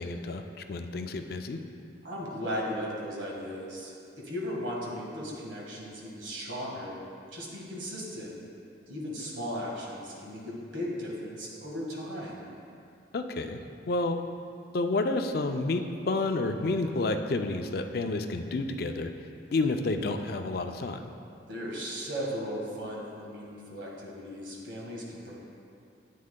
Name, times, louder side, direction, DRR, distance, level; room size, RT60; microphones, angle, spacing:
voice 1, 0.0-1.6 13.1-13.6 13.9-14.2 14.7-19.1 19.5-21.0, left 2 dB, 55° left, 6 dB, 0.4 m, -30 dB
voice 2, 2.0-7.0 7.3-8.3 8.9-12.5 21.5-25.3, equal, 80° right, -3 dB, 1.6 m, -36 dB
9.8 x 8.4 x 2.2 m, 2.5 s
head